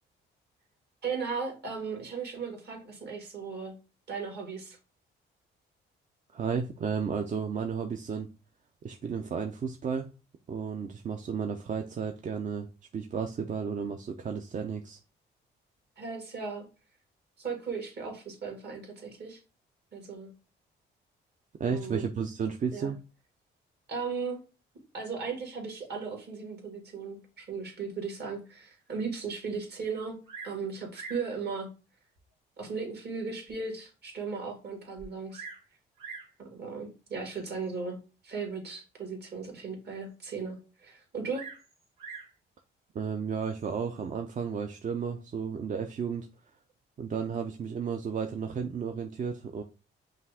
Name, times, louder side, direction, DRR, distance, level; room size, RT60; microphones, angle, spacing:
voice 1, 1.0-3.7 4.1-4.8 16.0-16.7 17.4-19.4 19.9-20.3 21.6-22.1 22.7-22.9 23.9-24.4 24.9-30.2 30.4-31.7 32.6-35.4 36.4-38.0 38.2-41.5, right 5 dB, 55° right, 2 dB, 1.9 m, -36 dB
voice 2, 6.3-8.3 8.8-10.1 10.5-12.7 12.9-15.0 21.6-23.0 42.9-46.3 47.0-49.6, right 6 dB, 40° right, 5 dB, 0.5 m, -33 dB
Bird vocalization bird call bird song, 30.2-30.6 30.9-31.3 32.2-32.3 32.9-33.0 33.5-33.6 33.8-33.9 35.0-35.7 36.0-36.4 37.3-37.7 41.3-42.4 43.4-43.9, right 5 dB, 90° right, 1.5 m, -45 dB
5.6 x 2.5 x 3.4 m, 0.32 s
cardioid pair, 90°, 20 cm